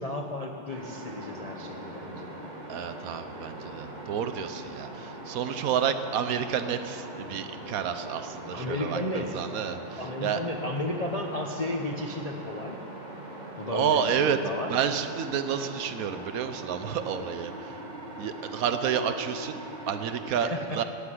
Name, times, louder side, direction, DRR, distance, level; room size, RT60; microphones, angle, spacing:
voice 1, 0.0-2.4 8.5-9.4 10.0-12.8 13.6-14.7 20.3-20.8, left 1 dB, 65° left, 2 dB, 0.3 m, -33 dB
sound 1, 0.7-20.3, right 1 dB, 20° right, 1.8 m, -41 dB
voice 2, 2.7-10.4 13.7-14.4 14.7-17.7 18.2-19.6 19.9-20.8, right 8 dB, 75° right, 9 dB, 0.8 m, -30 dB
15.5 x 8.3 x 9.8 m, 2.6 s
omnidirectional pair, 2.3 m